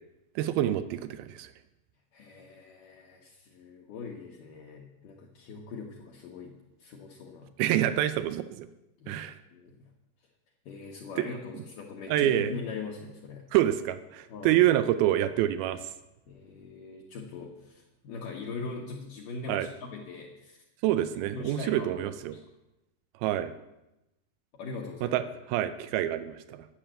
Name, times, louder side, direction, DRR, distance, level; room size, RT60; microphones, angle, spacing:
voice 1, 0.4-1.5 7.6-8.7 9.1-9.4 11.2-11.3 12.1-12.6 13.5-15.9 19.5-19.7 20.8-22.4 23.2-23.5 25.0-26.7, right 13 dB, 85° right, 12 dB, 2.1 m, -27 dB
voice 2, 2.1-7.5 9.0-9.3 9.5-9.9 10.7-13.5 14.3-14.6 16.3-20.6 21.3-22.4 24.5-25.2, left 4 dB, 70° left, -1 dB, 2.2 m, -41 dB
10.0 x 7.0 x 8.8 m, 0.94 s
omnidirectional pair, 4.9 m